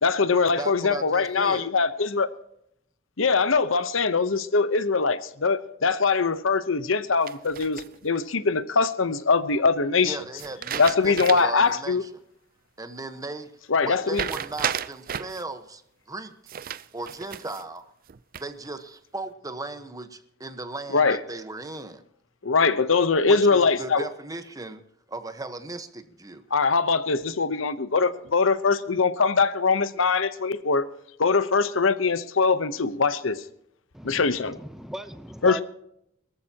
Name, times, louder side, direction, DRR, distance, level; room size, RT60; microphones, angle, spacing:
voice 1, 0.0-2.3 3.2-10.2 10.8-12.0 13.7-14.3 20.9-21.2 22.4-24.0 26.5-30.8 31.2-33.4 34.0-34.6 35.4-35.6, left 4 dB, 80° left, 13 dB, 0.9 m, -22 dB
voice 2, 0.6-1.7 10.0-12.1 12.8-13.5 13.8-15.8 16.1-16.3 16.9-17.8 18.4-22.0 23.3-24.8 25.1-26.4, right 2 dB, 20° right, 8 dB, 1.2 m, -37 dB
sound 1, 7.3-8.2 10.4-11.7 12.0-12.1 14.1-15.4 16.5-17.7 18.1-18.7, right 9 dB, 45° right, 0.5 m, -33 dB
voice 3, 33.9-35.6, equal, ahead, 9 dB, 0.8 m, -38 dB
23.0 x 14.0 x 2.9 m, 0.75 s
head